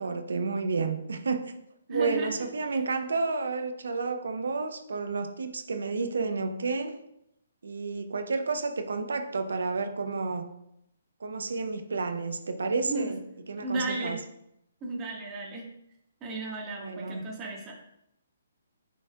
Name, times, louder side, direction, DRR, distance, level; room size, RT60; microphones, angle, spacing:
voice 1, 0.0-1.4 1.9-7.0 7.6-10.5 11.2-13.2 13.5-14.2 16.8-17.3, right 4 dB, 70° right, 7 dB, 0.8 m, -31 dB
voice 2, 1.9-2.3 12.9-13.1 13.6-14.2 14.8-15.6 16.2-17.7, right 2 dB, 20° right, -2 dB, 1.7 m, -34 dB
10.0 x 4.2 x 2.4 m, 0.80 s
figure-of-eight pair, 135°, 0 cm